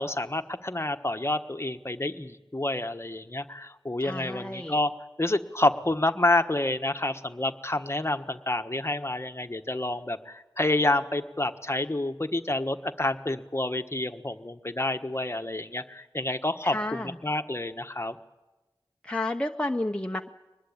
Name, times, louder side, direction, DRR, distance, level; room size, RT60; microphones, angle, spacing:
voice 1, 0.0-4.9 5.2-18.2, left 2 dB, 30° left, 8 dB, 1.3 m, -28 dB
voice 2, 4.0-4.8 16.6-17.2 19.0-20.3, left 1 dB, 10° left, 3 dB, 1.0 m, -31 dB
23.5 x 20.5 x 8.7 m, 1.1 s
wide cardioid pair, 50°, 9 cm